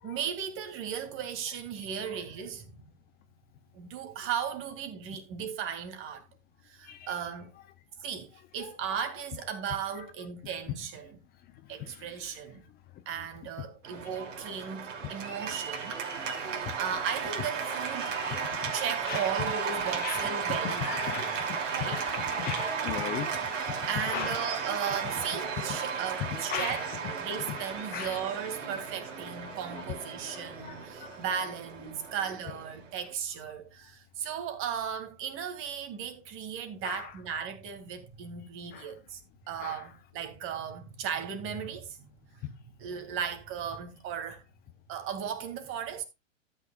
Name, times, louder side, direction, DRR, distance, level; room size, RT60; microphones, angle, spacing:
voice 1, 0.0-2.8 3.7-6.3 6.6-7.5 8.0-11.2 11.7-12.6 13.1-16.4 16.8-18.1 18.7-21.3 21.7-22.0 23.9-26.8 27.2-39.2 39.5-42.1 42.5-44.4 44.9-46.0, right 8 dB, 35° right, 2.3 m, -36 dB
voice 2, 11.7-12.4 16.6-16.7 18.2-18.7 19.1-19.3 20.0-23.8 24.1-25.1 26.5-27.0 27.5-27.7 27.9-28.2 29.4-31.2 36.8-37.1 38.7-38.9 39.6-39.9, left 10 dB, 25° left, 0.7 m, -39 dB
Cheering / Applause, 13.8-33.1, right 6 dB, 75° right, 3.0 m, -35 dB
13.0 x 9.1 x 2.4 m
hypercardioid pair, 125°, 38 cm